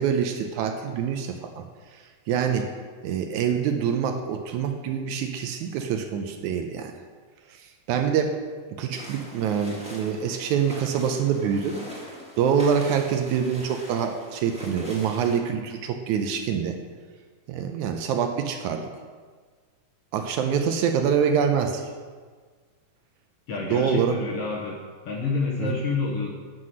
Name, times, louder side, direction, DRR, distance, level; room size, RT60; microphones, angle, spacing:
voice 1, 0.0-1.6 2.3-2.7 3.0-6.9 7.9-8.4 8.8-11.8 12.4-16.8 17.5-18.9 20.1-21.8 23.7-24.2 25.6-25.8, right 7 dB, 80° right, 5 dB, 1.9 m, -25 dB
sound 1, 8.9-15.4, equal, 5° right, 0.5 m, -42 dB
voice 2, 23.5-24.8 25.0-26.3, left 4 dB, 65° left, -2 dB, 1.6 m, -28 dB
9.4 x 5.8 x 6.2 m, 1.5 s
omnidirectional pair, 3.7 m